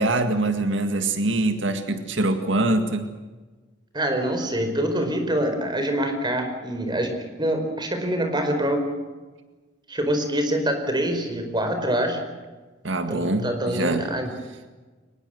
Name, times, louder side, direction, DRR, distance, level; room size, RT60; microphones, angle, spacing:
voice 1, 0.0-3.1 12.8-14.1, right 2 dB, 75° right, 7 dB, 2.0 m, -24 dB
voice 2, 3.9-8.9 9.9-12.2 13.1-14.3, right 1 dB, 25° right, 6 dB, 4.7 m, -25 dB
23.5 x 20.5 x 7.8 m, 1.3 s
head